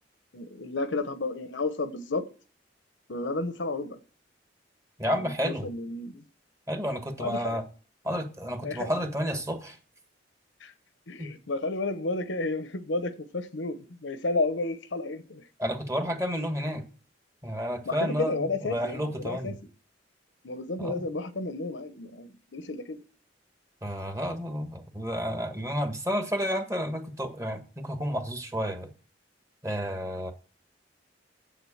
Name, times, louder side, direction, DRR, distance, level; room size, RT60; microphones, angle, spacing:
voice 1, 0.3-2.3 3.1-4.0 5.1-6.2 7.2-7.6 8.6-8.9 10.6-10.7 11.1-15.4 17.9-19.5 20.4-23.0, left 2 dB, 75° left, 1.0 m, -32 dB
voice 2, 5.0-5.7 6.7-7.6 8.0-9.8 11.2-11.3 15.6-16.8 17.4-19.6 20.8-21.0 23.8-28.9 29.6-30.3, equal, 15° right, 1.4 m, -31 dB
7.9 x 7.4 x 7.2 m
head